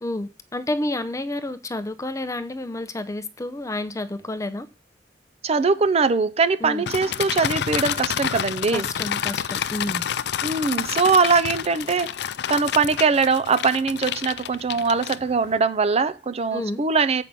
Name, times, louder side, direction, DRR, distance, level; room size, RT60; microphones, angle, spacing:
voice 1, 0.0-4.7 6.6-6.8 8.7-10.1 16.5-16.8, left 1 dB, 20° left, 0.6 m, -30 dB
voice 2, 5.4-8.9 10.4-12.1 12.5-17.2, right 4 dB, 35° right, 0.5 m, -21 dB
sound 1, 6.9-15.6, left 9 dB, 65° left, 0.4 m, -29 dB
7.5 x 5.3 x 6.8 m
head